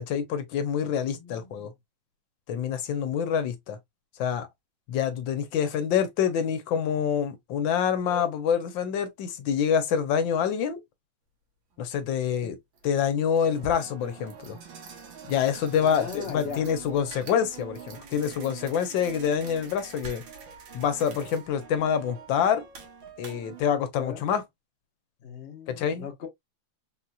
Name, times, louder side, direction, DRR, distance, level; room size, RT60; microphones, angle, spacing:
voice 1, 0.0-1.7 2.5-3.8 4.2-4.5 4.9-10.8 11.8-12.6 12.8-14.6 15.3-20.2 20.7-22.7 23.2-24.4 25.7-26.1, left 8 dB, 70° left, 1.3 m, -26 dB
voice 2, 1.1-1.7 12.4-12.5 15.8-16.7 24.0-24.2 25.2-26.3, left 7 dB, 50° left, 0.8 m, -39 dB
sound 1, 11.9-12.1 12.7-23.6, right 5 dB, 65° right, 1.7 m, -44 dB
4.2 x 2.7 x 2.3 m
omnidirectional pair, 2.3 m